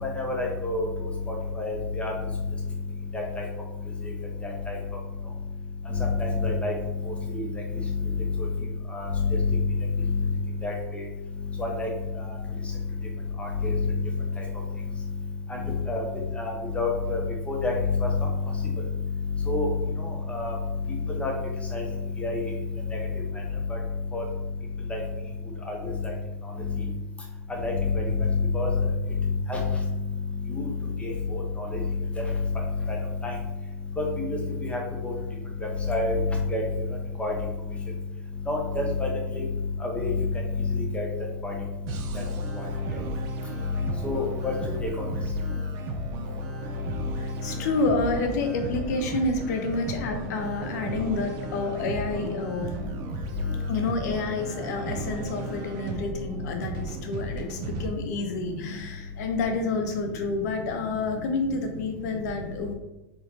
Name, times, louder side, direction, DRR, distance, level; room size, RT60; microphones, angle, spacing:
voice 1, 0.0-0.9 1.6-2.1 3.1-3.4 4.7-4.8 6.2-6.7 7.3-7.4 8.9-9.1 10.6-11.0 11.6-11.9 13.4-13.7 15.5-15.6 15.9-16.0 16.4-17.2 17.5-17.7 18.0-18.1 19.5-19.7 20.3-20.5 21.2-21.3 21.7-21.8 22.2-22.4 24.1-24.2 24.9-25.0 25.7-25.8 27.6-28.0 28.5-28.7 29.5-29.6 30.5-30.7 31.0-31.4 33.2-33.3 34.6-35.1 35.9-36.2 36.5-36.6 37.2-37.3 38.5-39.1 39.8-40.1 40.9-41.1 41.4-41.5 42.6-42.7 44.0-44.5 45.0-45.1, left 2 dB, 15° left, 0 dB, 1.2 m, -28 dB
sound 1, 41.9-57.9, right 4 dB, 50° right, 0.7 m, -36 dB
voice 2, 47.2-53.0 53.7-62.7, left 3 dB, 70° left, 5 dB, 0.9 m, -29 dB
4.5 x 3.4 x 2.9 m, 1.0 s
hypercardioid pair, 100°, 9 cm